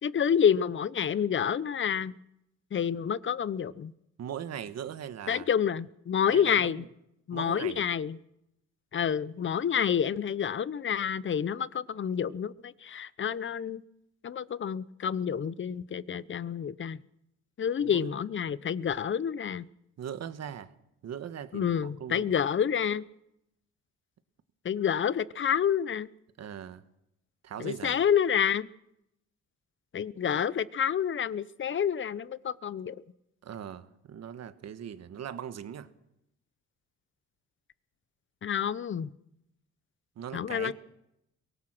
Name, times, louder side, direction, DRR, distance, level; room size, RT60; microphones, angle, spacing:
voice 1, 0.0-2.1 2.7-3.9 5.3-6.8 7.3-8.2 8.9-13.8 14.2-17.0 17.6-19.7 21.5-23.0 24.6-26.1 27.6-28.7 29.9-33.0 38.4-39.1 40.3-40.7, left 8 dB, 40° left, 18 dB, 0.8 m, -28 dB
voice 2, 4.2-5.5 6.3-6.9 7.3-7.9 17.8-18.1 20.0-20.7 21.0-22.3 26.4-26.8 27.4-28.0 33.4-35.9 40.2-40.7, right 9 dB, 60° right, 11 dB, 1.4 m, -40 dB
23.0 x 18.5 x 6.1 m, 0.83 s
cardioid pair, 90°, 30 cm